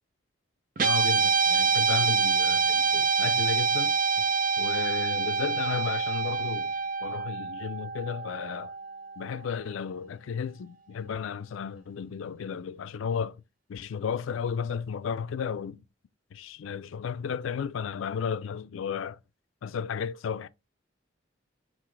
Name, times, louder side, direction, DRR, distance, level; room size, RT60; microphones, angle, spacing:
voice 1, 0.8-4.3 4.6-8.7 9.2-13.4 13.7-15.8 16.3-19.2 19.6-20.5, left 6 dB, 80° left, 0.4 m, -34 dB
Guitar, 0.8-9.2, right 5 dB, 45° right, 0.5 m, -26 dB
5.9 x 2.5 x 3.2 m
head